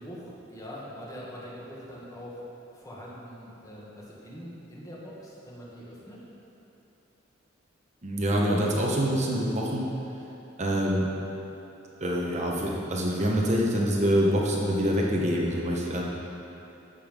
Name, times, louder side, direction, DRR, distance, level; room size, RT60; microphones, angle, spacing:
voice 1, 0.0-2.4 2.7-6.2, equal, 20° left, -6 dB, 1.8 m, -43 dB
voice 2, 8.0-9.9 10.6-11.1 12.0-16.0, equal, 35° right, -3 dB, 1.1 m, -25 dB
13.5 x 5.5 x 5.4 m, 3.0 s
head